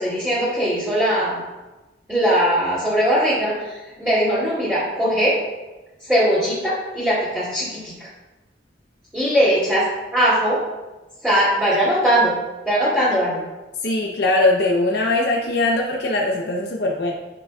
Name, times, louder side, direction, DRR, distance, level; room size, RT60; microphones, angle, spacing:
voice 1, 0.0-1.4 2.1-5.4 6.1-7.9 9.1-10.6 11.2-12.3 12.7-13.4, equal, 10° right, -13 dB, 2.5 m, -20 dB
voice 2, 13.8-17.1, left 2 dB, 60° left, 0 dB, 0.7 m, -21 dB
11.5 x 6.1 x 2.3 m, 1.1 s
head